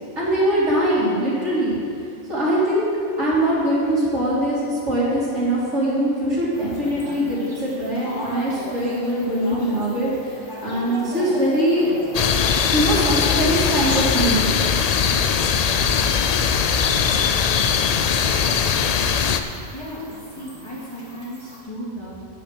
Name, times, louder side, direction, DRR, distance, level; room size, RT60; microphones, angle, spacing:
voice 1, 0.2-1.7 2.3-2.9 3.2-11.9 12.7-14.6, right 1 dB, 75° right, -8 dB, 3.3 m, -22 dB
sound 1, 6.5-21.6, equal, 15° right, 2.4 m, -39 dB
sound 2, 12.1-19.4, left 6 dB, 70° left, 0.3 m, -20 dB
voice 2, 19.5-22.2, equal, 20° left, -8 dB, 2.2 m, -35 dB
9.9 x 5.8 x 6.6 m, 2.6 s
omnidirectional pair, 1.2 m